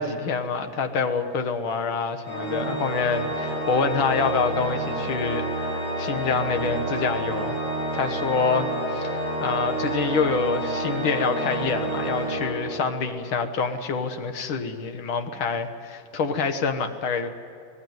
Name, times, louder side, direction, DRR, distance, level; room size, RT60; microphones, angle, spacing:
voice 1, 0.0-7.6 7.9-8.7 9.4-17.3, left 5 dB, 85° left, 7 dB, 2.2 m, -26 dB
Organ, 2.2-13.1, right 1 dB, 45° left, 6.1 m, -29 dB
25.0 x 18.5 x 9.4 m, 2.3 s
omnidirectional pair, 2.2 m